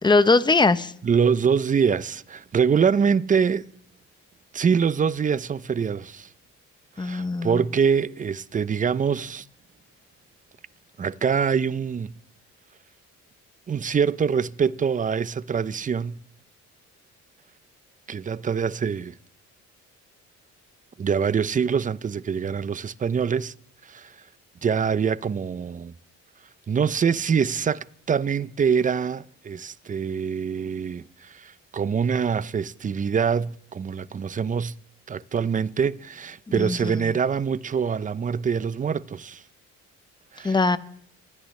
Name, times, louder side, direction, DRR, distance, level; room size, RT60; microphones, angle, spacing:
voice 1, 0.0-0.9 7.0-7.6 36.5-36.9 40.4-40.8, left 3 dB, 15° left, 0.8 m, -20 dB
voice 2, 1.0-3.7 4.5-6.3 7.0-9.5 11.0-12.1 13.7-16.2 18.1-19.1 21.0-23.5 23.8-24.2 24.6-25.9 26.7-34.7 35.1-39.4 40.3-40.6, right 6 dB, 25° right, 0.5 m, -24 dB
26.5 x 13.0 x 3.2 m
cardioid pair, 90°, 30 cm